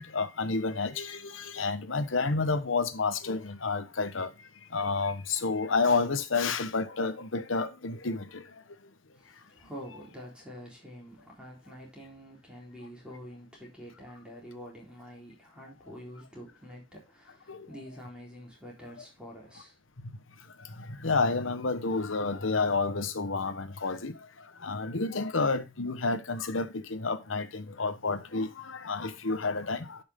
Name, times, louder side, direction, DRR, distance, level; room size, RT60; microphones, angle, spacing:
voice 1, 0.0-4.3 4.7-8.4 17.5-17.7 20.8-24.2 24.6-30.0, left 4 dB, 90° left, 1.2 m, -30 dB
voice 2, 9.1-19.8, equal, 5° right, 4.0 m, -47 dB
10.5 x 6.0 x 3.7 m
head